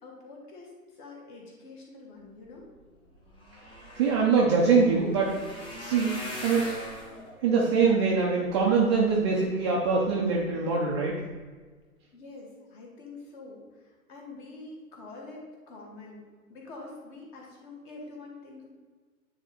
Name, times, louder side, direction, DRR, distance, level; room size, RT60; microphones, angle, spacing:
voice 1, 0.0-2.7 12.1-16.2 16.5-18.6, left 3 dB, 35° left, -1 dB, 1.7 m, -46 dB
sound 1, 2.8-2.9 3.1-9.4 10.0-10.4 10.9-11.1 11.3-11.4, equal, 10° left, 0.9 m, -42 dB
voice 2, 3.9-5.3 5.8-6.7 7.4-11.1, right 5 dB, 20° right, -4 dB, 0.5 m, -23 dB
8.9 x 3.5 x 4.0 m, 1.4 s
figure-of-eight pair, 115°, 43 cm